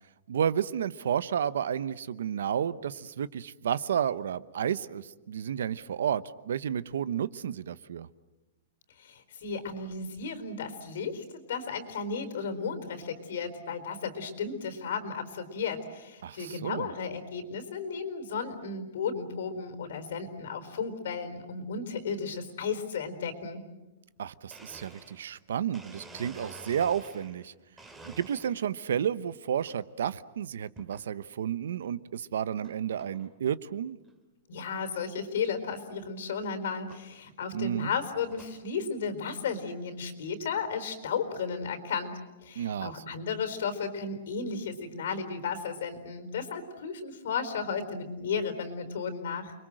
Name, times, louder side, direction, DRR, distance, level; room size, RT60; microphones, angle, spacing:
voice 1, 0.3-8.1 16.2-16.9 24.2-27.5 28.0-34.0 37.5-37.9 42.6-43.0, right 8 dB, 80° right, 16 dB, 1.0 m, -31 dB
voice 2, 9.0-23.6 34.5-49.5, left 5 dB, 65° left, 9 dB, 4.3 m, -34 dB
Domestic sounds home sounds, 24.2-24.3 24.5-27.4 27.8-28.8 29.3-29.8 30.8-31.1 31.7-31.8 32.6-32.7 33.0-33.3 33.8-33.9 34.0-34.1 34.6-34.7 36.0-36.1 36.9-37.1 37.7-38.6, right 2 dB, 10° right, 2.4 m, -50 dB
30.0 x 22.5 x 7.8 m, 1.1 s
supercardioid pair, 170°, 0 cm